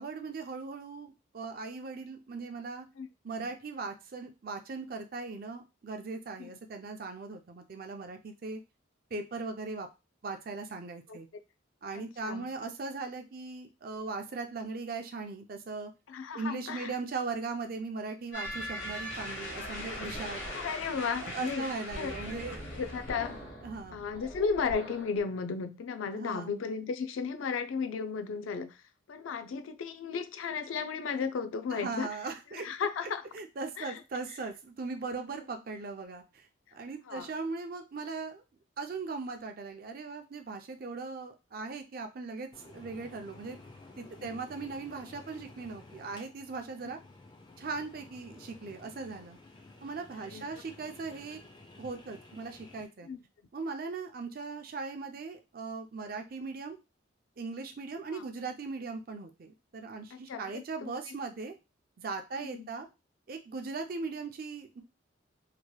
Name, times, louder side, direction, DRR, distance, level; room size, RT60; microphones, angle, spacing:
voice 1, 0.0-2.9 3.2-8.6 9.1-9.9 10.2-11.3 11.8-15.9 16.3-20.5 21.2-22.6 23.6-24.1 26.1-26.6 31.7-32.7 33.3-36.5 36.7-38.4 38.8-43.6 44.0-47.0 47.6-49.4 49.8-51.4 51.8-53.1 53.5-56.8 57.4-61.5 62.0-62.9 63.3-64.8, right 4 dB, 50° right, 0.4 m, -39 dB
voice 2, 11.9-12.5 16.1-16.9 20.5-21.7 22.0-22.2 22.7-23.4 23.9-28.8 29.1-32.1 32.5-33.2 33.8-34.0 37.1-37.3 44.2-44.3 50.3-50.5 53.0-53.2 58.1-58.2 60.1-61.1 62.4-62.7, left 5 dB, 85° left, 0.4 m, -35 dB
sound 1, 18.3-23.4, left 1 dB, 65° left, 0.9 m, -40 dB
sound 2, 18.5-25.2, equal, 45° left, 1.2 m, -46 dB
sound 3, 42.5-52.8, left 2 dB, 25° left, 0.5 m, -53 dB
3.0 x 2.9 x 2.2 m
head